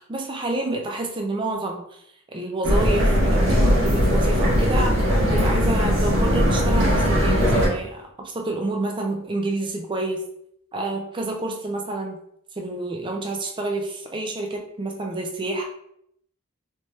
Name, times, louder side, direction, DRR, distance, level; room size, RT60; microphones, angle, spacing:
voice 1, 0.1-2.0 2.3-10.2 10.7-12.2 12.6-15.7, right 2 dB, 25° right, 1 dB, 0.5 m, -29 dB
pedestrian zone, 2.6-7.7, equal, 70° right, 1.3 m, -19 dB
3.4 x 2.8 x 3.1 m, 0.71 s
head